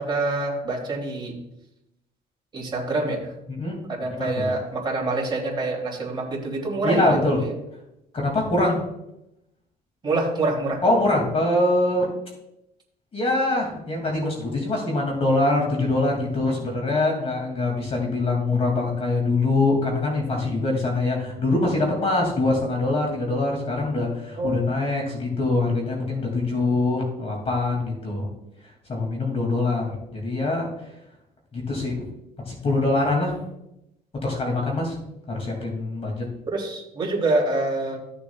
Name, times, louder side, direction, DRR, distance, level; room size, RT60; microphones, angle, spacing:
voice 1, 0.0-1.3 2.5-3.2 3.9-7.5 10.0-10.8 24.4-24.7 36.5-38.0, right 2 dB, 25° right, -2 dB, 3.0 m, -26 dB
voice 2, 3.5-3.8 4.1-4.5 6.8-7.4 8.1-8.8 10.8-12.1 13.1-28.3 28.9-29.8 30.1-30.7 31.5-31.9 32.5-33.3 34.2-35.0 35.3-36.3, left 2 dB, 35° left, 0 dB, 2.5 m, -23 dB
14.0 x 6.9 x 2.4 m, 0.84 s
cardioid pair, 110°, 17 cm